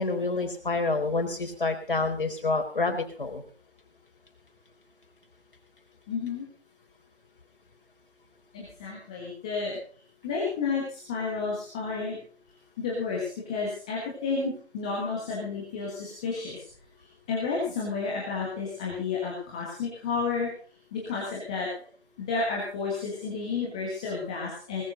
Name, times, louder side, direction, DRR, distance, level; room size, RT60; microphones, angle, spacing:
voice 1, 0.0-3.4, left 3 dB, 50° left, 4 dB, 4.2 m, -28 dB
voice 2, 6.1-6.5 8.5-9.8 10.2-12.2 12.8-16.6 17.3-20.5 20.9-21.7 22.2-24.8, left 4 dB, 5° left, -4 dB, 1.4 m, -31 dB
19.0 x 14.0 x 3.9 m, 0.43 s
figure-of-eight pair, 170°, 33 cm